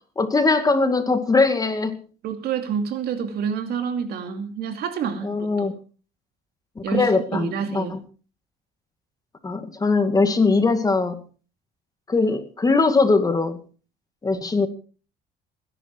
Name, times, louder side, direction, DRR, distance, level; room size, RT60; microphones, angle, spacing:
voice 1, 0.2-2.0 5.2-5.7 6.8-8.0 9.4-11.2 12.1-13.6 14.2-14.7, left 3 dB, 20° left, 8 dB, 2.2 m, -21 dB
voice 2, 2.2-5.3 5.6-5.7 6.8-7.1 7.3-7.9, right 7 dB, 70° right, 7 dB, 2.6 m, -27 dB
20.0 x 11.0 x 4.6 m, 0.38 s
cardioid pair, 110°, 17 cm